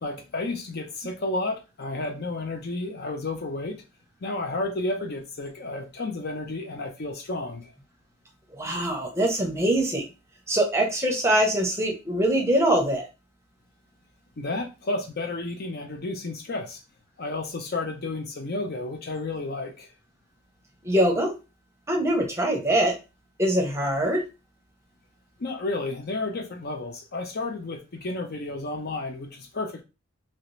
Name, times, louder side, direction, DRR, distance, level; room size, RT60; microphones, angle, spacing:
voice 1, 0.0-3.8 4.2-7.7 14.4-16.8 17.2-19.9 25.4-29.8, left 2 dB, 50° left, 5 dB, 0.5 m, -32 dB
voice 2, 8.5-10.0 10.5-13.0 20.8-21.4 21.9-23.0 23.4-24.3, right 1 dB, 15° right, 2 dB, 0.7 m, -23 dB
2.9 x 2.8 x 3.1 m, 0.29 s
head